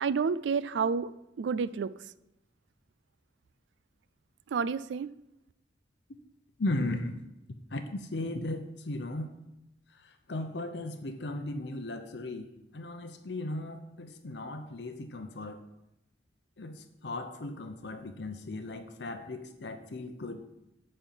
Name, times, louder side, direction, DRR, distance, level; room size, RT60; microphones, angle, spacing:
voice 1, 0.0-1.9 4.5-5.1, right 5 dB, 85° right, 18 dB, 0.4 m, -30 dB
voice 2, 6.6-7.2 7.7-9.3 9.9-15.6 16.6-20.5, left 2 dB, 75° left, 7 dB, 0.7 m, -37 dB
8.9 x 4.4 x 7.2 m, 0.89 s
head